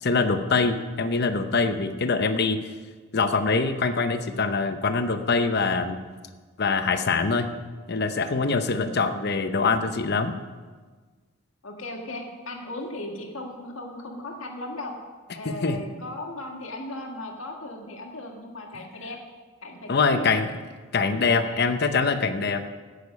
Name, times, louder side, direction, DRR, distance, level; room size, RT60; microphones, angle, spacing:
voice 1, 0.0-2.6 3.1-6.0 6.6-7.5 7.9-10.3 15.4-15.8 19.9-20.5 20.9-22.7, left 4 dB, 50° left, 9 dB, 0.7 m, -24 dB
voice 2, 11.6-15.0 15.4-19.2 19.6-20.4 21.3-21.7, left 1 dB, 65° left, 2 dB, 1.8 m, -37 dB
16.5 x 6.7 x 5.3 m, 1.4 s
head